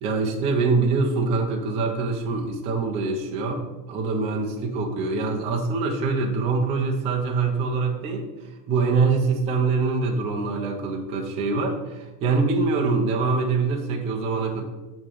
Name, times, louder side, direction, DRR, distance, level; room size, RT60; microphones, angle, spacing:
voice 1, 0.0-8.3 8.7-14.6, right 4 dB, 15° right, 1 dB, 0.3 m, -24 dB
8.5 x 3.0 x 6.3 m, 1.1 s
supercardioid pair, 170°, 45 cm